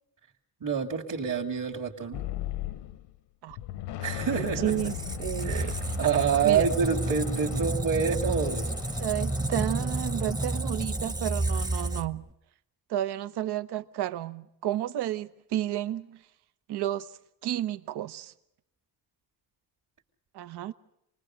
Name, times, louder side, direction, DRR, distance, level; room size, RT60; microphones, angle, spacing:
voice 1, 0.6-2.2 4.0-4.9 5.4-5.7 6.0-8.7, right 6 dB, 45° right, 2.6 m, -27 dB
sound 1, 2.1-3.2 3.5-10.5, left 13 dB, 80° left, 1.0 m, -39 dB
voice 2, 4.3-4.9 5.2-5.8 6.4-6.7 9.0-12.3 12.9-16.2 16.7-17.1 17.4-18.3 20.3-20.7, right 12 dB, 70° right, 1.0 m, -31 dB
Squeak, 4.5-12.3, right 2 dB, 10° right, 1.0 m, -31 dB
27.5 x 21.0 x 6.4 m
cardioid pair, 120°, 41 cm